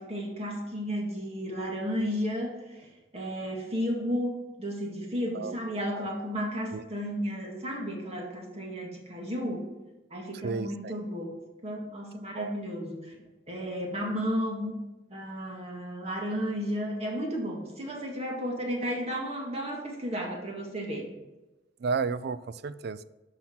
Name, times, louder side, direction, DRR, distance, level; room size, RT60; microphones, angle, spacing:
voice 1, 0.0-2.9 3.1-9.7 10.1-13.2 13.5-14.8 15.1-21.1, equal, 35° right, 0 dB, 2.0 m, -33 dB
voice 2, 10.4-11.0 12.3-12.6 21.8-23.0, right 5 dB, 60° right, 16 dB, 0.4 m, -32 dB
11.5 x 5.9 x 4.5 m, 1.1 s
head